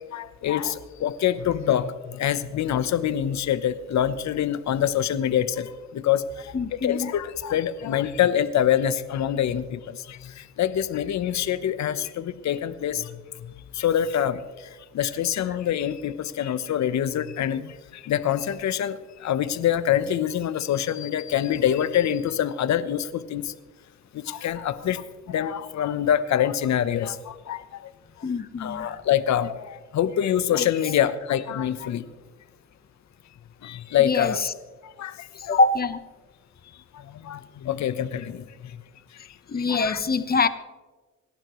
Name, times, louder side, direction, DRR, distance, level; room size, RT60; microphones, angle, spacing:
voice 1, 0.1-6.5 6.8-13.1 13.7-14.4 14.9-23.5 24.3-25.0 25.3-27.6 28.6-32.0 33.6-34.4 35.0-35.1 35.4-35.6 37.2-38.4 39.7-40.0, left 10 dB, 65° left, 1.0 m, -25 dB
voice 2, 6.5-7.1 28.2-29.0 30.6-30.7 34.0-34.5 35.4-36.0 39.5-40.5, left 3 dB, 30° left, 1.1 m, -24 dB
27.0 x 11.5 x 3.1 m
cardioid pair, 90°, 30 cm